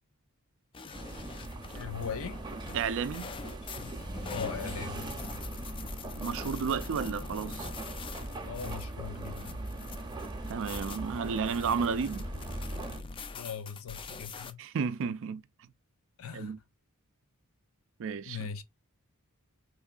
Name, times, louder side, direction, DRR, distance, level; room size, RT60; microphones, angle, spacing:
sound 1, 0.7-14.5, left 4 dB, 25° left, 0.3 m, -44 dB
sound 2, 0.9-13.0, right 2 dB, 20° right, 0.7 m, -40 dB
voice 1, 1.7-2.4 4.3-5.1 8.5-9.6 13.3-14.6 16.2-16.5 18.3-18.6, left 7 dB, 65° left, 0.6 m, -39 dB
voice 2, 2.7-3.3 6.2-7.7 10.5-12.3 14.6-15.4 16.3-16.6 18.0-18.5, right 6 dB, 60° right, 0.4 m, -32 dB
3.6 x 3.0 x 2.4 m
head